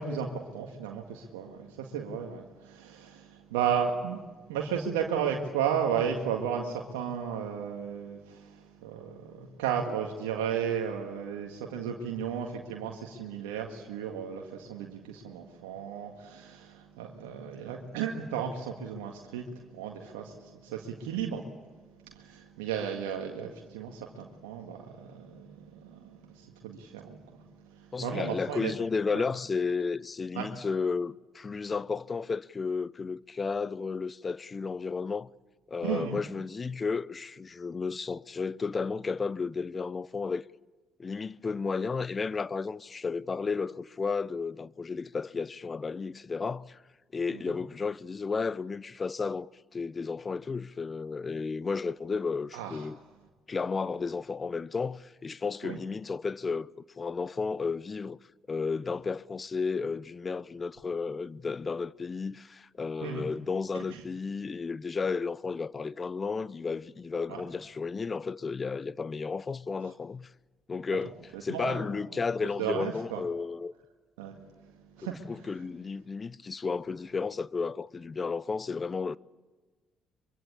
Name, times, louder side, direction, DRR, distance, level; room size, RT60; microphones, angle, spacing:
voice 1, 0.0-4.2 4.5-21.4 22.1-28.7 29.1-29.2 30.4-30.5 35.8-36.2 47.3-47.6 52.5-52.9 55.6-55.8 63.0-63.3 63.7-64.0 67.3-67.4 71.0-71.1 71.5-71.9 72.4-73.2 74.2-74.4 75.0-75.2, right 8 dB, 85° right, 1.8 m, -34 dB
voice 2, 27.9-35.3 35.7-40.5 41.0-46.8 47.1-53.0 53.5-56.7 57.0-58.2 58.5-70.3 70.7-71.1 71.4-73.7 75.0-79.2, left 4 dB, 35° left, 0.7 m, -33 dB
24.0 x 24.0 x 8.6 m
hypercardioid pair, 50°, 0 cm